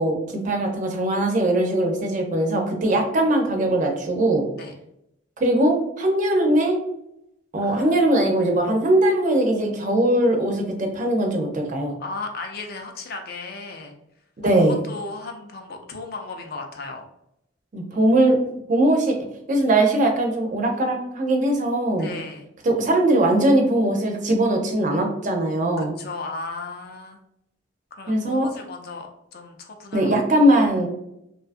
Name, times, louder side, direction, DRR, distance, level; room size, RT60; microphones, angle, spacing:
voice 1, 0.0-4.4 5.4-6.8 7.5-12.0 14.4-14.8 17.7-18.4 18.7-19.2 19.5-22.1 22.6-25.9 28.1-28.5 29.9-30.9, right 1 dB, 40° right, 2 dB, 0.4 m, -20 dB
voice 2, 7.6-8.2 12.0-13.9 14.4-17.1 17.9-18.2 22.0-22.5 25.8-27.2 27.9-30.3, left 3 dB, 50° left, 3 dB, 0.4 m, -36 dB
2.7 x 2.3 x 2.4 m, 0.80 s
head